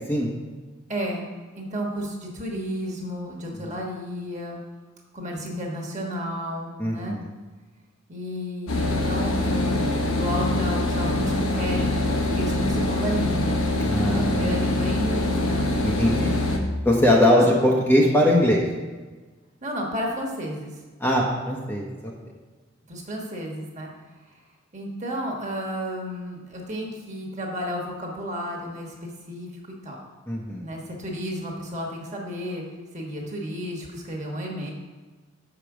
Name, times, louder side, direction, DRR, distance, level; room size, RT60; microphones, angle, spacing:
voice 1, 0.9-1.3 1.5-4.6 5.1-7.2 8.1-13.6 13.9-15.7 17.2-17.4 19.6-20.7 22.9-23.9 24.7-29.5 29.8-30.0 30.6-32.6 32.9-34.7, equal, 30° right, -1 dB, 1.4 m, -32 dB
voice 2, 6.8-7.2 13.8-14.5 15.8-16.3 16.8-18.6 21.0-22.1 30.3-30.6, left 1 dB, 10° left, -3 dB, 0.7 m, -21 dB
sound 1, 8.7-16.6, left 2 dB, 65° left, 1.0 m, -24 dB
6.6 x 5.0 x 6.0 m, 1.3 s
head